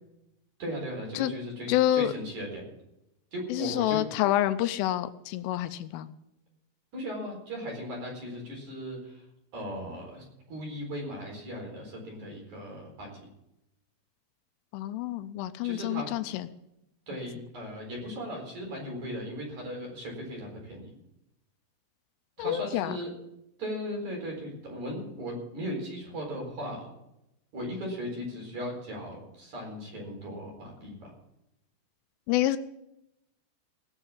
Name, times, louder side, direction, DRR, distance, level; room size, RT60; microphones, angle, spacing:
voice 1, 0.6-2.6 3.3-4.0 6.9-9.2 9.5-13.3 15.6-16.1 17.1-20.9 22.4-23.1 23.6-26.9 27.5-31.1, equal, 40° right, 0 dB, 5.2 m, -37 dB
voice 2, 1.7-2.1 3.5-6.1 14.7-16.5 22.4-23.0 32.3-32.6, left 13 dB, 85° left, 12 dB, 3.1 m, -28 dB
19.0 x 6.7 x 7.3 m, 0.85 s
omnidirectional pair, 5.7 m